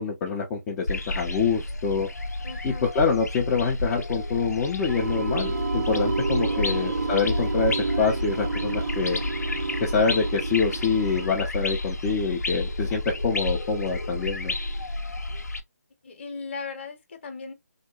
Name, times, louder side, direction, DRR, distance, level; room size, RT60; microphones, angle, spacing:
voice 1, 0.0-2.1 2.6-9.2 9.8-14.6, left 5 dB, 15° left, 0.4 m, -26 dB
sound 1, 0.9-15.6, left 2 dB, 75° left, 0.5 m, -31 dB
voice 2, 2.4-2.9 6.5-6.9 16.0-17.5, left 4 dB, 40° left, 0.8 m, -38 dB
sound 2, 4.9-11.3, right 4 dB, 65° right, 0.7 m, -30 dB
2.8 x 2.1 x 2.2 m
figure-of-eight pair, 150°, 9 cm